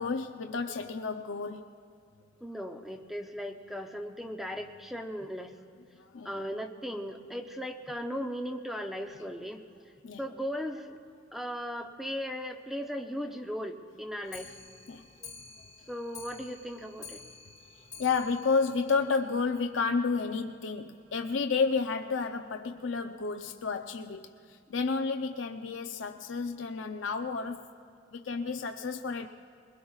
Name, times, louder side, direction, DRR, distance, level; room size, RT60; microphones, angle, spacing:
voice 1, 0.0-1.7 6.0-6.3 10.0-10.2 14.9-15.0 18.0-27.7 28.1-29.3, left 4 dB, 80° left, 6 dB, 0.6 m, -31 dB
voice 2, 2.4-5.5 6.2-9.6 10.2-11.0 11.3-14.6 15.2-15.3 15.9-17.2, equal, ahead, 4 dB, 0.7 m, -37 dB
Clock, 14.2-19.7 20.1-20.2 20.4-20.5 20.9-21.0 21.2-21.3 22.0-22.1 22.8-22.9 23.6-23.7, left 5 dB, 20° left, 1.0 m, -50 dB
22.0 x 21.5 x 2.4 m, 2.4 s
head